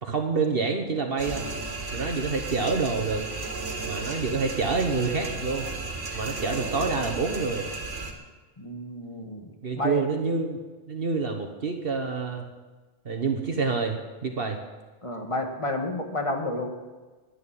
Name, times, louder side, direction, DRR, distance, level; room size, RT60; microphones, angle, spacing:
voice 1, 0.0-1.4 1.9-3.2 3.8-5.7 6.1-7.7 9.6-10.6 10.9-12.5 13.0-14.6, right 4 dB, 55° right, 4 dB, 1.3 m, -27 dB
sound 1, 1.2-8.1, right 3 dB, 85° right, 2.1 m, -34 dB
voice 2, 8.6-10.0 15.0-16.7, left 1 dB, 25° left, 3 dB, 1.7 m, -31 dB
11.0 x 10.5 x 8.9 m, 1.3 s
omnidirectional pair, 1.2 m